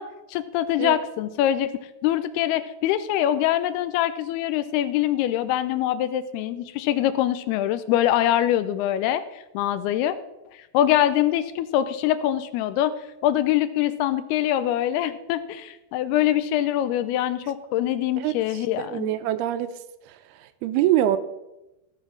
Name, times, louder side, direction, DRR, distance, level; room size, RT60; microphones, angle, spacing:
voice 1, 0.0-1.7 2.0-10.2 10.5-12.9 13.2-19.1, left 12 dB, 80° left, 13 dB, 2.5 m, -24 dB
voice 2, 18.2-19.7 20.1-21.2, right 12 dB, 80° right, 12 dB, 2.4 m, -25 dB
15.5 x 5.6 x 6.2 m, 0.95 s
omnidirectional pair, 4.7 m